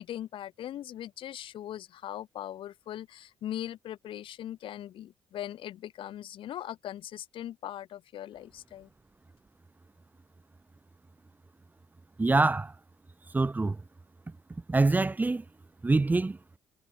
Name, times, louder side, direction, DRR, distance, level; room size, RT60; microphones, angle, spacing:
voice 1, 0.0-8.9, left 12 dB, 65° left, 1.0 m, -40 dB
voice 2, 12.2-12.7 13.3-13.8 14.7-15.4 15.8-16.4, right 3 dB, 20° right, 0.5 m, -25 dB
hypercardioid pair, 45°, 10 cm